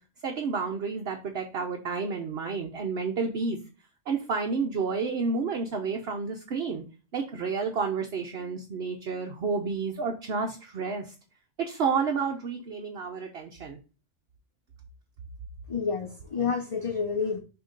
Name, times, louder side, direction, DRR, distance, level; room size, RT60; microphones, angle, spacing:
voice 1, 0.2-3.6 4.1-6.8 7.1-11.1 11.6-13.8, right 5 dB, 60° right, 1.0 m, -30 dB
voice 2, 15.7-17.4, left 5 dB, 35° left, 0.5 m, -29 dB
6.3 x 2.9 x 5.1 m
omnidirectional pair, 1.2 m